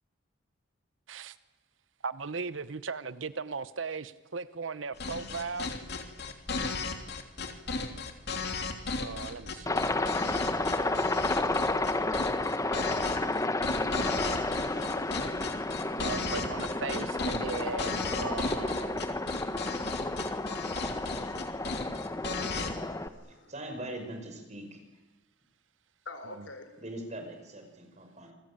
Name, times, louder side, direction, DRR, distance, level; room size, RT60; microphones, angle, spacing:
voice 1, 2.0-5.7 9.0-9.9 16.0-19.1, right 4 dB, 80° right, 15 dB, 0.9 m, -37 dB
sound 1, 5.0-22.7, left 4 dB, 60° left, 3.0 m, -35 dB
Aircraft, 9.7-23.1, left 2 dB, 15° left, 1.1 m, -31 dB
voice 2, 13.8-15.5 16.2-16.4 17.2-17.3 20.5-23.5 26.0-26.7, left 2 dB, 80° left, 8 dB, 4.4 m, -48 dB
voice 3, 23.2-24.8 26.8-28.3, right 1 dB, 40° right, 5 dB, 5.9 m, -41 dB
28.0 x 21.0 x 8.9 m, 1.0 s
head